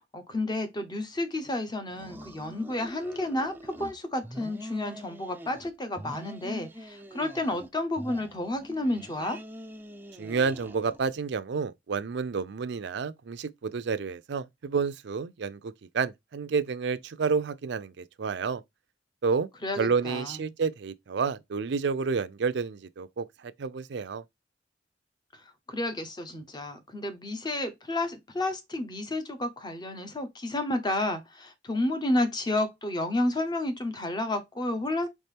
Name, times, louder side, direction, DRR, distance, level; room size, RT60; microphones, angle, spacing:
voice 1, 0.1-9.4 19.6-20.4 25.7-35.1, left 1 dB, 25° left, 0.8 m, -31 dB
sound 1, 1.9-3.9 4.2-5.7 6.0-7.7 8.0-11.2, equal, 10° right, 0.4 m, -44 dB
voice 2, 10.2-18.6 19.2-19.5 19.8-24.2, right 5 dB, 65° right, 0.5 m, -30 dB
4.2 x 3.6 x 3.4 m
head